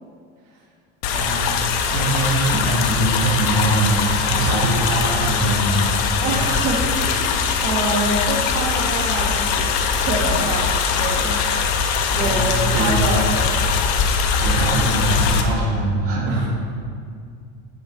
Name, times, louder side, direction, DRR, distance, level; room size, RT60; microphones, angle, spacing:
sound 1, 1.0-15.4, left 6 dB, 80° left, 1.1 m, -21 dB
voice 1, 1.1-6.6 12.2-13.1 14.4-16.5, right 2 dB, 40° right, -3 dB, 2.2 m, -23 dB
voice 2, 6.2-11.4 12.1-13.5 16.2-16.5, right 2 dB, 75° right, -1 dB, 1.7 m, -26 dB
9.2 x 8.1 x 5.4 m, 2.2 s
cardioid pair, 180°, 33 cm